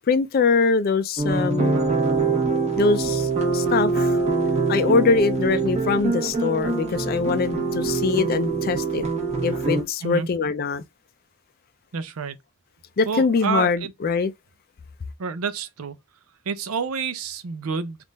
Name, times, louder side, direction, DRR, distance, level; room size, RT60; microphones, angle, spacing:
voice 1, 0.1-1.9 2.8-4.2 4.7-9.0 9.4-10.8 13.0-14.3, left 4 dB, 45° left, 0.4 m, -23 dB
sound 1, 1.2-9.8, right 3 dB, 30° right, 1.2 m, -24 dB
voice 2, 11.9-12.4 13.1-13.9 15.2-16.0 16.5-18.0, right 5 dB, 80° right, 0.6 m, -28 dB
3.6 x 2.5 x 3.9 m
head